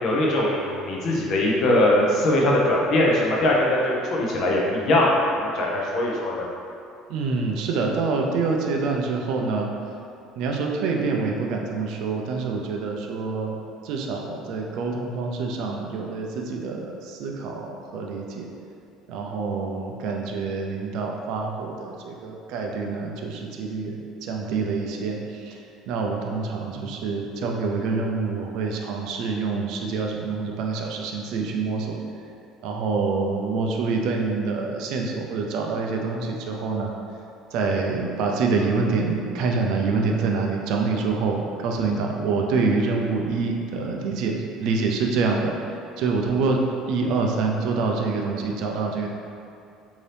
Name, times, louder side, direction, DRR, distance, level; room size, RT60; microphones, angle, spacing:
voice 1, 0.0-6.5, left 1 dB, 45° left, -3 dB, 0.6 m, -21 dB
voice 2, 7.1-9.7 10.4-13.6 13.8-18.5 19.1-32.0 32.6-36.9 37.5-45.6 46.0-49.1, right 4 dB, 65° right, 1 dB, 0.4 m, -26 dB
2.8 x 2.6 x 3.3 m, 2.6 s
cardioid pair, 145°, 0 cm